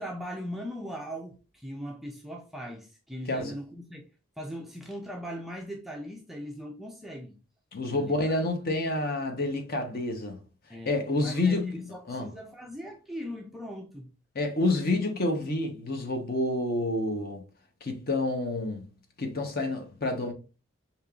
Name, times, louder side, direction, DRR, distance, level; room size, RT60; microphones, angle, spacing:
voice 1, 0.0-4.0 4.4-7.4 8.0-8.4 10.7-14.1, equal, ahead, 0.4 m, -39 dB
voice 2, 7.7-10.4 10.9-12.3 14.3-17.4 17.8-18.8 19.2-20.3, left 2 dB, 45° left, 0.8 m, -28 dB
5.1 x 2.8 x 2.3 m
head